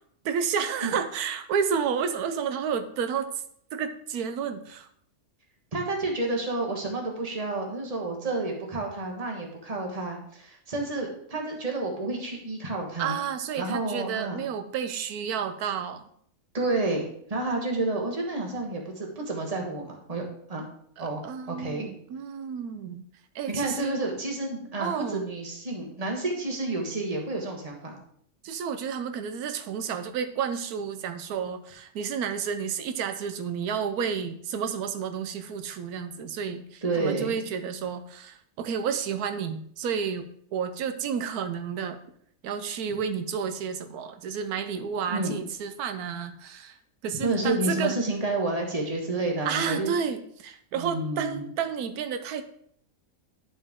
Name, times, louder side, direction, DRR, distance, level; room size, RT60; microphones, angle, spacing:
voice 1, 0.2-3.3 3.7-4.9 13.0-16.1 21.0-23.0 23.3-24.0 24.8-25.3 28.4-42.0 42.4-46.8 47.0-48.0 49.4-52.4, right 7 dB, 90° right, 9 dB, 1.2 m, -31 dB
voice 2, 5.7-13.2 13.6-14.4 16.5-20.2 20.5-20.6 21.0-21.2 21.5-21.9 23.5-27.9 36.8-37.4 45.1-45.4 47.2-49.9 50.7-51.5, right 2 dB, 25° right, 1 dB, 1.4 m, -30 dB
11.0 x 4.4 x 3.6 m, 0.65 s
omnidirectional pair, 1.5 m